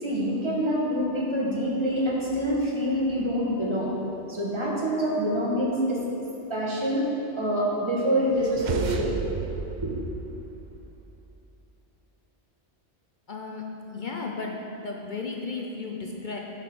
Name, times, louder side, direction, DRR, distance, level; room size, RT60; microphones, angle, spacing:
voice 1, 0.0-3.9 4.3-6.0 6.5-7.0 7.4-9.1 9.8-9.9, equal, 25° right, -5 dB, 1.7 m, -26 dB
sound 1, 8.3-11.1, right 6 dB, 60° right, 0.5 m, -34 dB
voice 2, 13.3-16.4, left 3 dB, 50° left, 0 dB, 0.8 m, -34 dB
9.4 x 5.1 x 6.2 m, 2.8 s
omnidirectional pair, 1.2 m